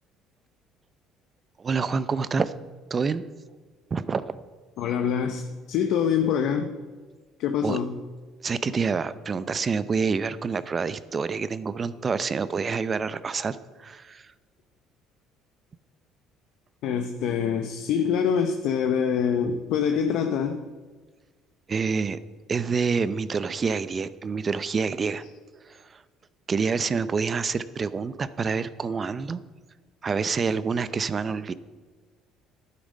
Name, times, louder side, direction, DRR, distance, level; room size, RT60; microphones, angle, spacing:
voice 1, 1.6-2.5 2.9-3.2 3.9-4.4 7.6-7.8 8.4-14.3 21.7-22.2 22.5-25.2 25.6-26.0 26.5-29.4 30.0-31.5, right 5 dB, 30° right, 15 dB, 0.6 m, -27 dB
voice 2, 4.8-5.4 5.7-6.7 7.4-7.9 16.8-20.6, left 7 dB, 70° left, 5 dB, 0.8 m, -25 dB
11.5 x 9.9 x 5.4 m, 1.4 s
cardioid pair, 100°, 0 cm